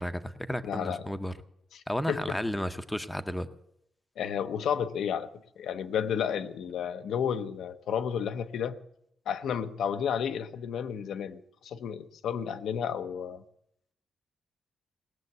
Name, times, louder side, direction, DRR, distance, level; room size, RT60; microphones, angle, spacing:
voice 1, 0.0-1.3 1.9-3.5, equal, 5° left, 10 dB, 0.6 m, -33 dB
voice 2, 0.6-1.1 1.7-2.4 4.2-5.3 5.6-8.8 9.3-13.4, left 8 dB, 90° left, 9 dB, 0.8 m, -32 dB
18.5 x 7.2 x 9.4 m, 0.74 s
wide cardioid pair, 170°, 0 cm